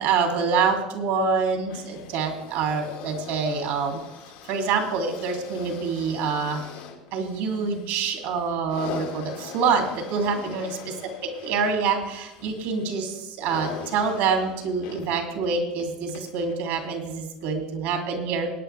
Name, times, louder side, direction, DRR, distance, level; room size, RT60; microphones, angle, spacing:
voice 1, 0.0-4.0 4.5-6.6 7.1-10.7 11.2-18.5, right 5 dB, 70° right, 4 dB, 2.7 m, -26 dB
sound 1, 1.6-17.1 17.9-18.0, left 7 dB, 80° left, 2.1 m, -42 dB
19.5 x 9.1 x 3.4 m, 0.92 s
supercardioid pair, 100°, 3 cm